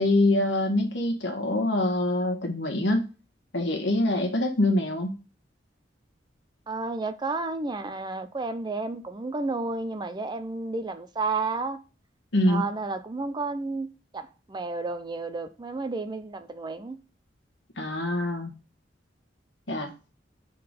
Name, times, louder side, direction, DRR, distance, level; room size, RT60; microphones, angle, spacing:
voice 1, 0.0-3.1 3.5-5.1 12.3-12.6 17.8-18.5 19.7-19.9, left 1 dB, 80° left, 1.4 m, -24 dB
voice 2, 6.7-11.8 12.5-13.9 14.1-17.0, right 3 dB, 25° right, 0.4 m, -31 dB
5.6 x 3.9 x 5.1 m
head